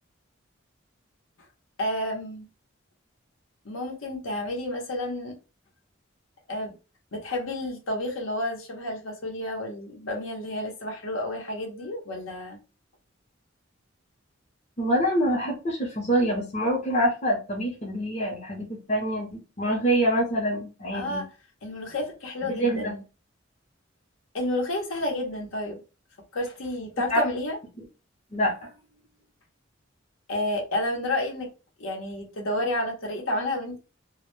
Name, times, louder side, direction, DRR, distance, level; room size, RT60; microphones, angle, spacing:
voice 1, 1.8-2.5 3.6-5.3 6.5-6.7 7.1-12.6 20.9-21.3 21.6-23.0 24.3-25.8 26.3-27.6 30.3-31.5 31.8-33.8, left 1 dB, 80° left, 0.7 m, -30 dB
voice 2, 14.8-21.2 22.4-22.9 27.1-27.2 28.3-28.7, equal, 35° left, 0.6 m, -26 dB
2.1 x 2.1 x 3.0 m
head